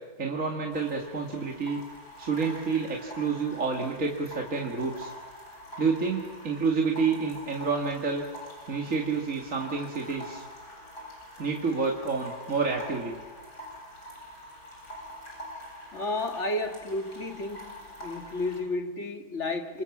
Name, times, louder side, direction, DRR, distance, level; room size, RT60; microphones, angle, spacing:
voice 1, 0.2-1.8 2.2-5.1 5.8-8.2 8.7-10.4 11.4-13.2, right 4 dB, 50° right, 0 dB, 2.6 m, -29 dB
sound 1, 0.7-18.6, equal, 70° left, 8.6 m, -45 dB
voice 2, 15.9-17.7 18.0-19.8, left 2 dB, 40° left, 4 dB, 2.3 m, -32 dB
27.5 x 27.0 x 7.4 m, 1.3 s
omnidirectional pair, 1.8 m